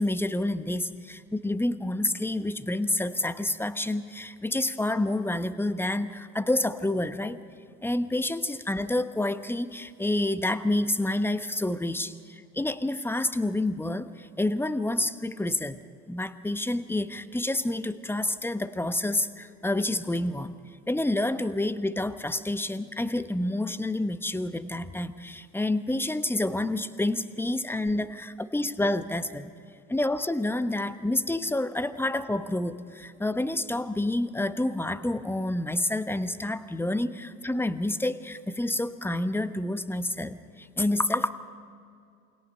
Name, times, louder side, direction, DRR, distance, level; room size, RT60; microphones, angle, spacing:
voice 1, 0.0-7.4 7.8-15.8 16.1-20.5 20.9-29.5 29.9-41.3, left 1 dB, 5° left, 12 dB, 1.1 m, -28 dB
28.0 x 21.5 x 5.5 m, 2.3 s
figure-of-eight pair, 65°, 40 cm